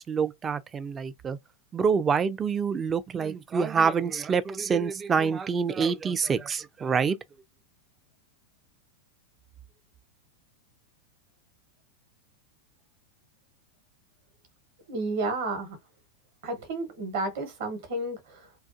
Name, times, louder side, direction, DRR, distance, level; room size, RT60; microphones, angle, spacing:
voice 1, 0.0-1.4 1.7-7.2, right 6 dB, 20° right, 0.3 m, -26 dB
voice 2, 14.9-15.8 16.4-18.4, right 2 dB, 55° right, 1.0 m, -31 dB
2.3 x 2.2 x 2.6 m
figure-of-eight pair, 90°, 0 cm